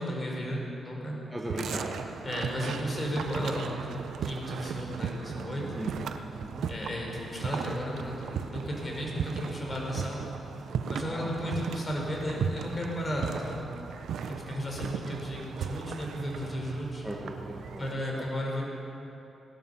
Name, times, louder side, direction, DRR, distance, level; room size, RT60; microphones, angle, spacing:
voice 1, 0.0-1.2 2.2-5.6 6.7-10.2 10.9-13.6 14.3-17.0 17.8-18.6, equal, 30° left, -2 dB, 4.3 m, -34 dB
voice 2, 1.3-1.9 5.7-6.1 6.4-6.7 11.0-11.3 17.0-17.8 18.1-18.2, right 1 dB, 5° right, -3 dB, 1.7 m, -38 dB
sound 1, 1.5-17.9, right 7 dB, 80° right, 0.7 m, -37 dB
17.0 x 13.0 x 5.6 m, 2.9 s
cardioid pair, 75°, 0 cm